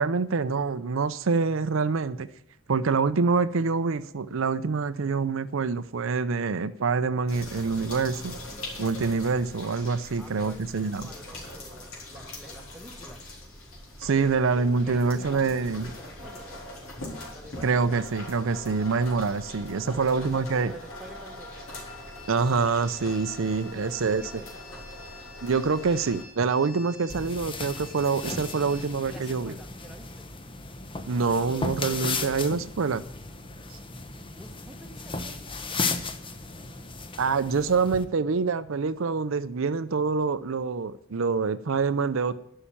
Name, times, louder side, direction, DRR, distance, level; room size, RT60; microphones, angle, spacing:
voice 1, 0.0-2.3 2.7-8.3 8.8-11.1 14.0-15.9 17.6-20.7 22.3-24.2 25.4-29.5 31.1-33.0 33.7-33.8 37.2-42.3, right 4 dB, 65° right, 12 dB, 0.5 m, -26 dB
sound 1, 7.3-26.2, left 1 dB, 70° left, 3.7 m, -42 dB
voice 2, 10.2-10.7 11.0-13.3 14.8-16.7 17.3-18.1 19.8-21.8 23.7-24.7 28.4-30.3 31.2-32.5 34.3-36.2, equal, ahead, 3 dB, 1.1 m, -48 dB
sound 2, 21.7-28.9, left 3 dB, 50° left, 2.9 m, -49 dB
sound 3, 27.1-38.0, left 3 dB, 25° left, 0.8 m, -35 dB
11.5 x 5.6 x 8.6 m, 0.75 s
head